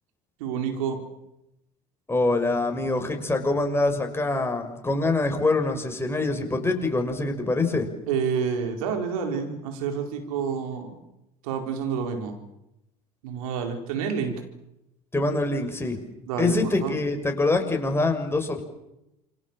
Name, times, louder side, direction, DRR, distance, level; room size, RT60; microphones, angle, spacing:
voice 1, 0.4-1.0 8.1-11.0 11.4-12.3 13.2-14.4 16.3-16.9, right 6 dB, 75° right, 4 dB, 4.7 m, -28 dB
voice 2, 2.1-7.9 15.1-16.0 16.4-18.6, left 2 dB, 15° left, 4 dB, 6.3 m, -24 dB
28.0 x 24.0 x 7.5 m, 0.89 s
hypercardioid pair, 75°, 18 cm